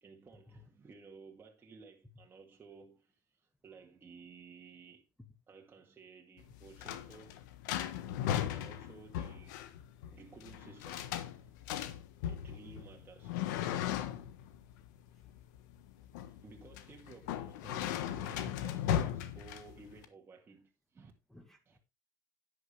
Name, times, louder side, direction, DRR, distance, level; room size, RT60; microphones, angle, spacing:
voice 1, 0.0-5.1 5.5-7.4 8.5-9.6 10.1-11.9 12.3-13.4 16.2-21.1 21.7-21.8, right 4 dB, 20° right, 2.2 m, -56 dB
sound 1, 6.4-20.0, left 10 dB, 85° left, 1.3 m, -37 dB
voice 2, 21.0-21.8, left 1 dB, 5° left, 1.8 m, -63 dB
11.0 x 9.2 x 3.3 m
supercardioid pair, 120°, 10 cm